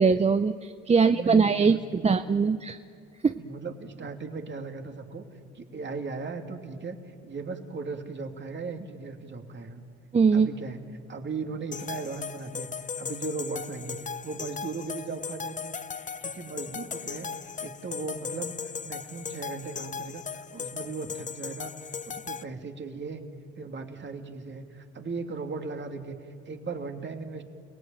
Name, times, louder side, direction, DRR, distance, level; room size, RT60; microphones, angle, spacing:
voice 1, 0.0-1.8 2.0-2.8 3.2-3.4 10.1-10.5, right 5 dB, 20° right, 9 dB, 0.7 m, -21 dB
voice 2, 1.0-2.2 3.3-5.2 5.5-9.8 10.3-10.8 11.1-12.7 13.0-15.7 16.2-17.3 17.6-18.5 18.8-21.7 22.0-23.2 23.5-27.4, right 4 dB, 35° right, 4 dB, 2.8 m, -37 dB
sound 1, 11.7-22.4, left 6 dB, 25° left, 0.7 m, -37 dB
29.5 x 17.5 x 9.2 m, 2.4 s
supercardioid pair, 85°, 30 cm